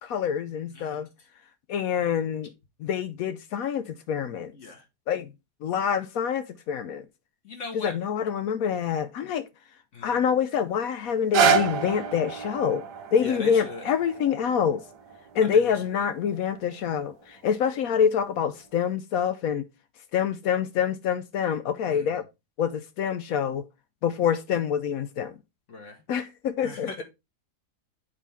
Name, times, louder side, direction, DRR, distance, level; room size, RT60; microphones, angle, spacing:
voice 1, 0.0-1.1 1.7-2.5 2.8-4.5 5.1-5.3 5.6-7.1 7.7-9.5 10.0-12.8 13.1-14.8 15.3-19.7 20.1-22.2 22.6-23.6 24.0-25.3 26.1-27.0, left 8 dB, 70° left, 0.9 m, -26 dB
voice 2, 4.5-4.8 7.4-7.9 9.9-10.2 13.2-13.9 15.5-15.7 21.9-22.1 25.7-26.0 26.6-27.0, left 3 dB, 50° left, 1.6 m, -39 dB
sound 1, 11.1-17.2 17.8-17.9, right 6 dB, 85° right, 1.4 m, -29 dB
8.2 x 4.3 x 3.4 m
omnidirectional pair, 1.7 m